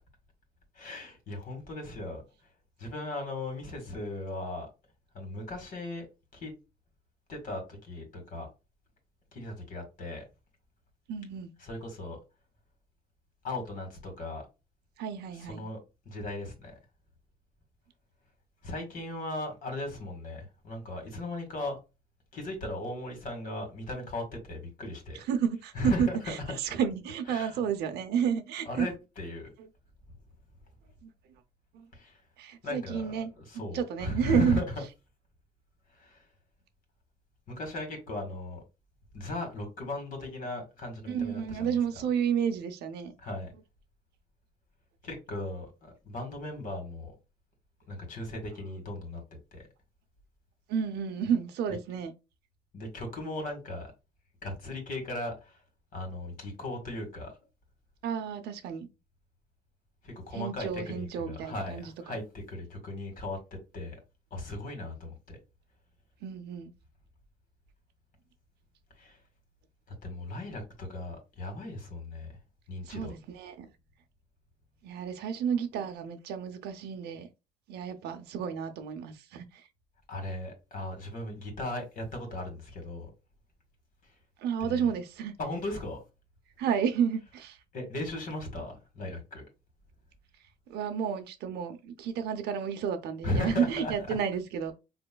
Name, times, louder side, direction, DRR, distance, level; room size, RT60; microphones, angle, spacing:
voice 1, 0.7-2.2 2.8-4.7 5.1-6.1 6.3-6.5 7.3-8.5 9.3-10.3 11.6-12.2 13.4-14.5 15.4-15.8 16.1-16.8 18.6-21.8 22.3-25.2 25.7-26.2 27.3-27.6 28.7-29.5 31.9-32.2 32.6-33.1 33.4-34.6 35.9-36.3 37.5-38.6 39.1-41.7 43.2-43.5 45.0-47.1 47.9-49.2 49.5-49.7 52.7-53.9 54.4-55.6 55.9-57.3 60.0-63.4 63.7-64.0 64.3-65.4 69.0-69.2 70.0-72.4 72.7-73.1 80.1-83.1 84.0-84.1 84.6-84.9 85.4-86.0 87.7-89.4 93.2-94.1, left 2 dB, 55° left, 2.0 m, -37 dB
voice 2, 11.1-11.5 15.0-15.7 25.1-28.9 31.0-31.1 31.7-31.9 32.4-34.6 41.1-43.1 50.7-52.1 58.0-58.9 60.3-62.2 66.2-66.7 72.9-73.7 74.8-77.3 77.7-79.7 84.4-85.3 86.6-87.6 90.7-94.7, right 7 dB, 75° right, 0.7 m, -31 dB
4.2 x 3.0 x 2.3 m
cardioid pair, 110°, 17 cm